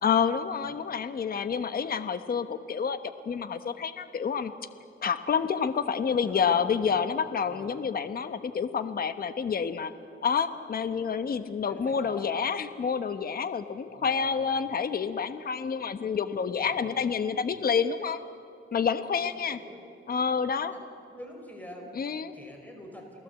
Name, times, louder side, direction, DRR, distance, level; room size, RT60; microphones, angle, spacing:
voice 1, 0.0-3.0 3.3-4.5 5.0-9.9 10.2-18.2 18.7-19.6 20.1-20.7 21.9-22.4, left 6 dB, 45° left, 10 dB, 1.1 m, -28 dB
voice 2, 6.1-6.5 6.8-7.8 11.7-12.4 13.8-14.4 16.5-17.2 19.2-19.8 20.6-20.8 21.1-21.9 22.3-23.2, equal, 10° left, 2 dB, 5.3 m, -47 dB
29.0 x 18.5 x 8.3 m, 2.6 s
cardioid pair, 125°, 21 cm